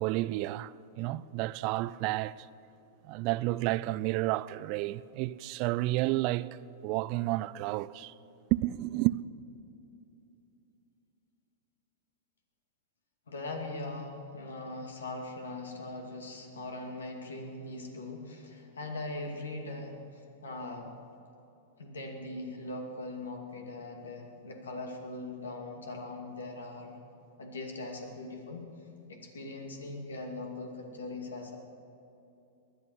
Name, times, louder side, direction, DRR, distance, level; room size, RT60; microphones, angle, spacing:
voice 1, 0.0-2.5 3.0-6.5 6.8-8.1 8.5-9.2, right 18 dB, 45° right, 0.4 m, -31 dB
voice 2, 13.3-20.9 21.8-27.0 27.4-28.7 29.1-31.6, left 2 dB, 80° left, 2.4 m, -40 dB
19.5 x 11.0 x 6.2 m
hypercardioid pair, 105°, 0 cm